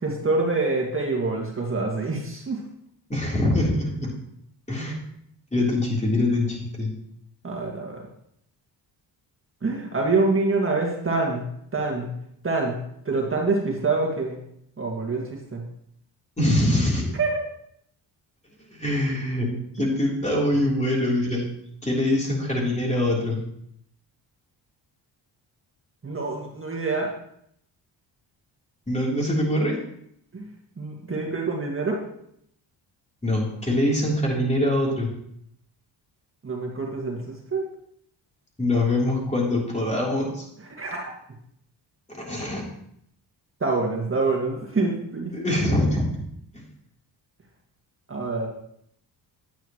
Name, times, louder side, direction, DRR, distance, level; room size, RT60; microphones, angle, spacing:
voice 1, 0.0-2.6 7.4-8.0 9.6-11.4 11.7-12.1 12.4-12.8 13.1-14.4 14.8-15.6 17.2-17.4 26.0-27.1 30.3-30.5 30.8-32.0 36.4-37.6 40.8-41.0 43.6-45.3 48.1-48.5, right 3 dB, 30° right, -1 dB, 2.0 m, -26 dB
voice 2, 3.1-4.1 4.7-5.0 5.5-6.9 16.4-17.1 18.7-21.4 21.8-23.4 28.9-29.8 33.2-35.1 38.6-40.5 42.2-42.6 45.3-46.0 46.5-46.6, left 1 dB, 15° left, -2 dB, 3.4 m, -23 dB
10.5 x 8.9 x 3.1 m, 0.71 s
cardioid pair, 80°, 44 cm